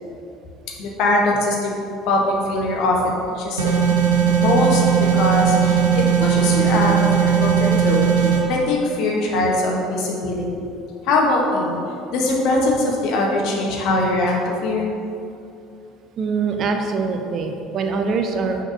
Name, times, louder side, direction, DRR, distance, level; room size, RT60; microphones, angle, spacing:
voice 1, 0.8-1.7 2.1-3.7 4.4-4.8 5.1-10.7 11.0-11.8 12.1-14.9, left 2 dB, 60° left, -2 dB, 1.5 m, -21 dB
sound 1, 3.6-8.4, right 8 dB, 80° right, 1.0 m, -18 dB
voice 2, 16.2-18.6, right 4 dB, 50° right, 4 dB, 0.8 m, -23 dB
6.3 x 4.6 x 6.4 m, 2.6 s
figure-of-eight pair, 60°, 0 cm